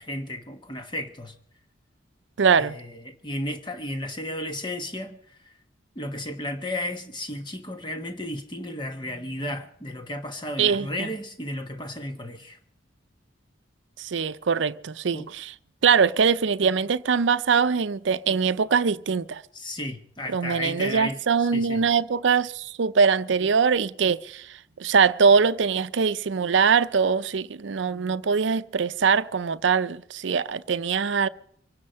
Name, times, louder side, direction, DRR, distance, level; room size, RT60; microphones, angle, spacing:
voice 1, 0.0-1.4 2.6-5.5 5.9-12.6 15.1-15.3 19.5-21.9, left 1 dB, 25° left, 1.3 m, -34 dB
voice 2, 2.4-2.7 10.6-10.9 14.0-15.5 15.8-19.4 20.3-31.3, right 6 dB, 70° right, 0.5 m, -22 dB
24.0 x 9.8 x 5.7 m
head